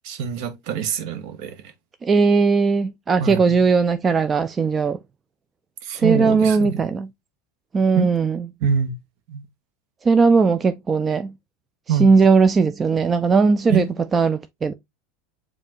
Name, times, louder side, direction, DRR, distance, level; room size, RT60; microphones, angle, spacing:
voice 1, 0.0-1.7 3.2-3.6 5.8-6.9 7.9-8.1 8.6-9.0 9.3-9.4 11.9-12.1 13.7-13.9, right 8 dB, 60° right, 0.9 m, -25 dB
voice 2, 2.0-5.0 6.0-7.1 7.7-8.4 10.0-11.3 12.0-13.8 14.1-14.7, right 4 dB, 25° right, 0.4 m, -18 dB
7.2 x 2.5 x 2.9 m
hypercardioid pair, 80°, 0 cm